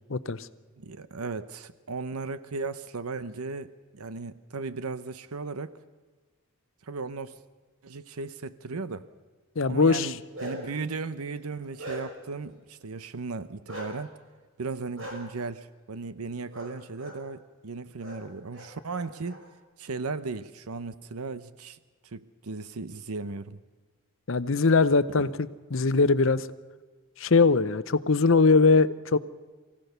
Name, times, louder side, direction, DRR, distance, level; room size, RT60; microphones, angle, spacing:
voice 1, 0.1-0.5 9.6-10.1 24.3-26.5 27.2-29.2, left 4 dB, 60° left, 14 dB, 0.7 m, -21 dB
voice 2, 0.8-5.8 6.8-7.4 7.8-9.1 9.7-14.1 14.6-19.4 19.8-21.8 22.0-23.6, right 4 dB, 85° right, 14 dB, 0.8 m, -36 dB
Bark, 10.0-10.8 11.3-12.3 13.7-13.9 15.0-15.1 16.5-16.7 17.0-17.2 18.0-18.2 18.5-19.4, equal, 65° right, 5.5 m, -40 dB
23.5 x 16.5 x 6.7 m, 1.4 s
head